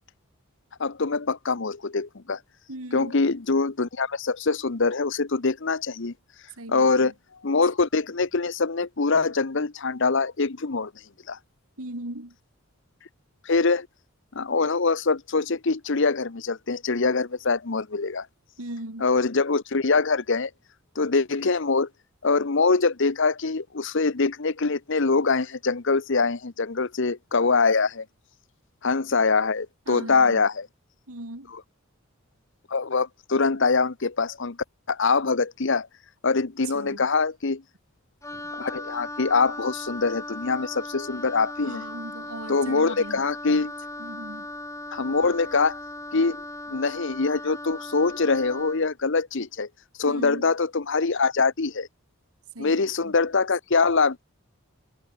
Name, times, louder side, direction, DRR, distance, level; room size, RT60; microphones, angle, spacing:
voice 1, 0.8-2.4 2.9-6.1 6.7-7.1 7.4-10.9 11.3-11.4 13.4-13.9 14.3-18.3 19.0-20.5 20.9-21.9 22.2-28.0 28.8-30.7 32.7-34.6 34.9-35.9 36.2-37.6 38.5-41.8 42.5-43.7 44.9-45.8 46.1-49.7 50.0-51.9 52.6-54.2, left 4 dB, 55° left, 0.9 m, -24 dB
voice 2, 2.7-3.2 6.6-7.1 11.8-12.4 18.6-19.1 29.9-30.4 31.1-31.5 36.7-37.0 38.3-38.4 41.6-43.3 44.0-44.5 50.0-50.5 52.5-53.2, right 1 dB, 80° right, 3.8 m, -38 dB
Wind instrument woodwind instrument, 38.2-48.9, left 2 dB, 15° left, 3.1 m, -38 dB
head